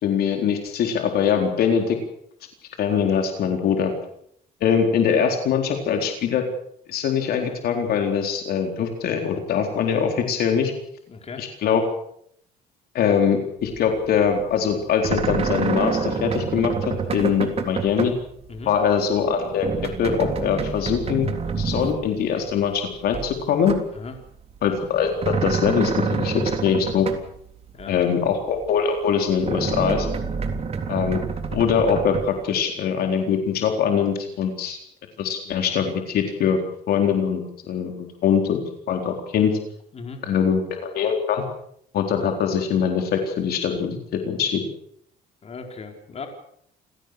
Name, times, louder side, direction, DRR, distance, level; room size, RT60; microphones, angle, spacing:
voice 1, 0.0-2.0 2.8-3.9 4.6-6.5 6.9-10.7 11.4-11.8 12.9-16.7 17.1-18.1 18.7-21.3 21.6-23.8 24.6-27.1 27.9-30.1 30.9-31.2 31.5-34.8 35.2-36.6 36.9-37.4 37.7-38.6 38.9-39.5 40.2-41.4 41.9-44.0 44.3-44.6, left 7 dB, 65° left, 4 dB, 4.1 m, -22 dB
voice 2, 11.1-11.5 18.5-18.7 23.9-24.1 27.7-27.9 39.9-40.2 45.4-46.3, left 4 dB, 40° left, 4 dB, 4.8 m, -37 dB
sound 1, 13.6-14.0 14.3-18.2 18.5-18.9 19.2-22.7 23.1-24.2 24.5-27.4 27.8-27.9 28.6-28.7 29.3-32.4, right 5 dB, 35° right, 3.6 m, -28 dB
29.0 x 17.0 x 6.7 m, 0.68 s
cardioid pair, 110°, 17 cm